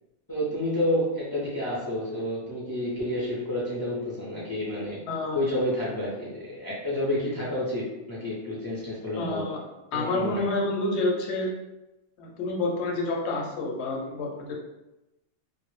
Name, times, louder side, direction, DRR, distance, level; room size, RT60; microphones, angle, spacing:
voice 1, 0.3-5.0 5.3-9.6 9.9-10.5, left 1 dB, 30° left, -7 dB, 0.4 m, -29 dB
voice 2, 5.1-5.4 9.2-9.6 9.9-11.5 12.2-14.5, left 2 dB, 75° left, -1 dB, 0.9 m, -28 dB
2.0 x 2.0 x 3.1 m, 0.96 s
omnidirectional pair, 1.2 m